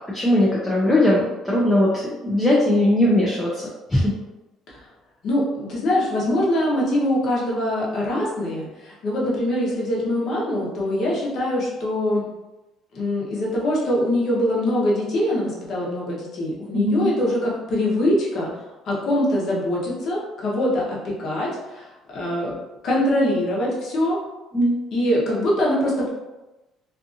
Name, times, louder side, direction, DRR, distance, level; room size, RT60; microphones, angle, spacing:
voice 1, 0.1-3.6 3.9-4.1 16.7-17.1 24.5-24.8, left 1 dB, 10° left, -5 dB, 0.4 m, -19 dB
voice 2, 5.2-12.2 12.9-18.5 18.8-21.9 22.1-22.5 22.8-24.2 24.9-26.1, left 1 dB, 45° left, -4 dB, 0.8 m, -23 dB
2.6 x 2.4 x 2.6 m, 1.1 s
cardioid pair, 165°, 0 cm